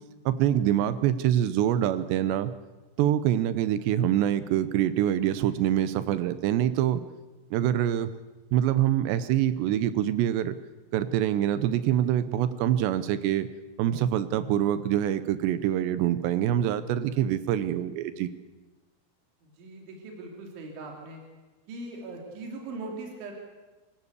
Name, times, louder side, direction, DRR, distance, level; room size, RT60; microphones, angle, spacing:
voice 1, 0.3-2.5 3.0-7.0 7.5-8.1 8.5-10.6 10.9-13.5 13.8-18.3, right 11 dB, 80° right, 13 dB, 2.5 m, -25 dB
voice 2, 19.4-21.2 21.7-23.3, right 2 dB, 65° right, 1 dB, 5.5 m, -40 dB
26.5 x 16.0 x 8.3 m, 1.2 s
omnidirectional pair, 5.9 m